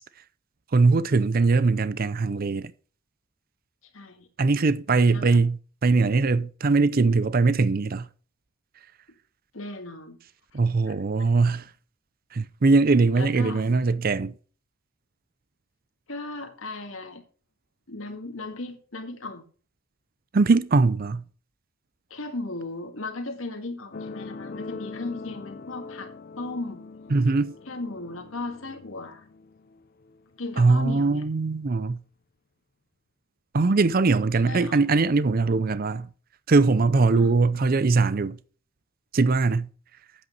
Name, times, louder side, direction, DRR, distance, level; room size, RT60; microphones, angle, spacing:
voice 1, 0.7-2.7 4.4-8.1 10.5-11.7 12.3-14.4 20.3-21.2 27.1-27.5 30.6-32.0 33.5-36.1 36.5-38.4 39.1-39.7, right 3 dB, 45° right, 0.5 m, -21 dB
voice 2, 3.9-4.3 5.1-5.5 9.5-10.2 10.5-11.0 13.2-13.7 16.1-17.2 17.9-19.4 22.1-26.1 26.4-26.8 27.7-29.3 30.4-31.3 34.4-34.8 37.1-37.3, left 2 dB, 70° left, 1.8 m, -36 dB
sound 1, 23.9-31.0 31.8-31.9, left 3 dB, 45° left, 0.5 m, -42 dB
8.8 x 7.9 x 5.4 m
head